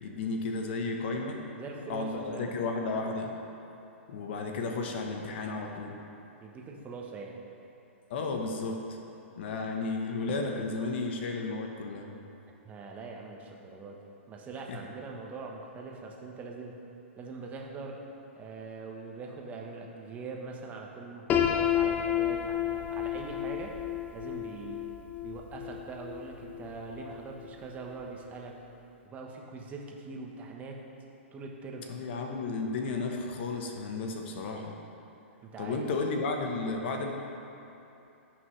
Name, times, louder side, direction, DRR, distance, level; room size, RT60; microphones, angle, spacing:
voice 1, 0.0-1.4 1.9-3.3 4.1-6.0 8.1-9.0 9.4-12.1 14.7-14.8 31.9-34.8 35.6-37.1, left 3 dB, 55° left, 2 dB, 1.1 m, -33 dB
voice 2, 1.5-2.6 6.4-7.4 12.6-14.0 14.3-16.7 17.2-18.0 18.3-23.7 24.1-24.8 25.2-28.6 29.1-30.8 31.3-31.9 35.4-35.9, right 4 dB, 20° right, 0 dB, 1.2 m, -42 dB
Piano, 21.3-27.1, left 10 dB, 25° left, 0.5 m, -31 dB
17.5 x 6.0 x 3.3 m, 2.8 s
hypercardioid pair, 135°, 7 cm